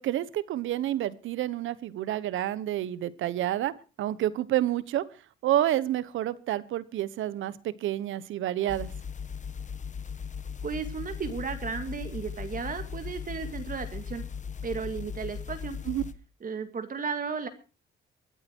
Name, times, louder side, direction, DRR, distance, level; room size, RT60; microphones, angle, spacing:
voice 1, 0.0-5.0 5.4-8.9 15.9-16.0, right 13 dB, 80° right, 18 dB, 1.0 m, -29 dB
sound 1, 8.7-16.1, left 6 dB, 40° left, 1.3 m, -38 dB
voice 2, 10.6-14.2 14.6-15.8 16.4-17.5, right 5 dB, 45° right, 8 dB, 2.1 m, -34 dB
24.5 x 8.9 x 4.6 m, 0.34 s
cardioid pair, 90°, 20 cm